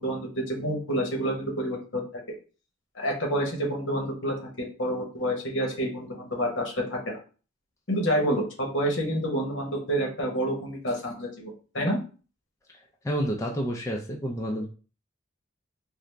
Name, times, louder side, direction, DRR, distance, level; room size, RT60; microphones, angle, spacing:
voice 1, 0.0-2.2 2.9-7.2 7.9-12.0, equal, 70° left, 0 dB, 1.1 m, -28 dB
voice 2, 13.0-14.7, equal, 15° left, 0 dB, 0.4 m, -29 dB
3.8 x 2.0 x 3.2 m, 0.37 s
head